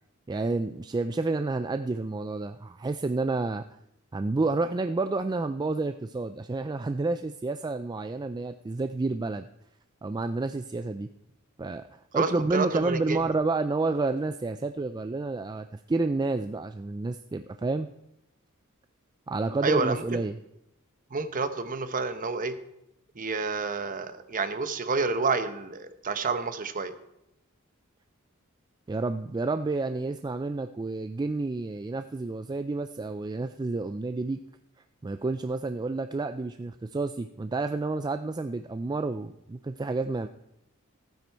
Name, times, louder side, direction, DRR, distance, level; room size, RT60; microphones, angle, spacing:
voice 1, 0.3-3.6 4.1-9.5 10.0-11.1 11.6-17.9 19.3-20.4 28.9-34.4 35.0-40.3, right 3 dB, 20° right, 9 dB, 0.3 m, -30 dB
voice 2, 12.1-13.2 19.6-20.2 21.1-22.6 23.2-26.9, right 4 dB, 40° right, 10 dB, 0.9 m, -29 dB
15.0 x 9.3 x 4.6 m, 0.83 s
head